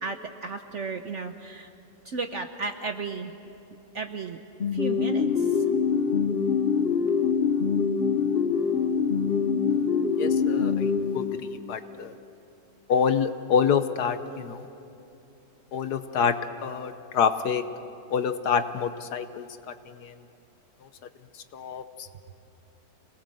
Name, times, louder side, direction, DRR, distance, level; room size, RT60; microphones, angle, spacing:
voice 1, 0.0-1.7 2.1-3.3 3.9-4.4 4.7-5.5, right 4 dB, 55° right, 6 dB, 0.9 m, -34 dB
sound 1, 4.6-11.8, left 6 dB, 45° left, 0.8 m, -24 dB
voice 2, 10.2-12.1 12.9-14.7 15.7-17.6 18.1-20.1 20.8-20.9 21.3-22.1, left 7 dB, 65° left, 10 dB, 1.3 m, -27 dB
26.5 x 19.0 x 7.7 m, 2.9 s
omnidirectional pair, 2.0 m